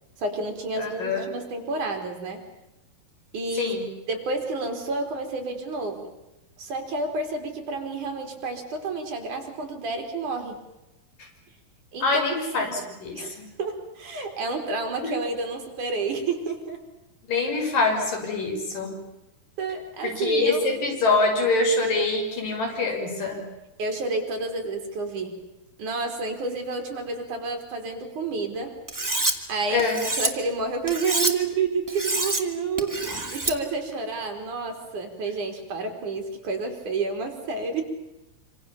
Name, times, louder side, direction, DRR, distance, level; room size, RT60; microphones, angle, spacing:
voice 1, 0.2-2.5 3.3-3.8 4.1-6.1 6.6-10.6 11.9-12.3 12.5-12.8 13.1-16.8 19.6-20.6 23.8-25.5 25.8-28.7 29.5-37.8, right 3 dB, 50° right, 4 dB, 5.1 m, -30 dB
voice 2, 0.8-1.3 3.6-3.9 12.0-13.5 15.0-15.1 17.3-19.0 20.0-23.5 29.7-30.0, left 3 dB, 55° left, 1 dB, 7.5 m, -25 dB
Cutlery silverware, 28.9-29.3 29.8-30.3 30.9-31.3 31.9-32.4 32.8-33.5, right 2 dB, 10° right, 1.1 m, -26 dB
27.0 x 26.5 x 7.2 m, 0.96 s
omnidirectional pair, 4.5 m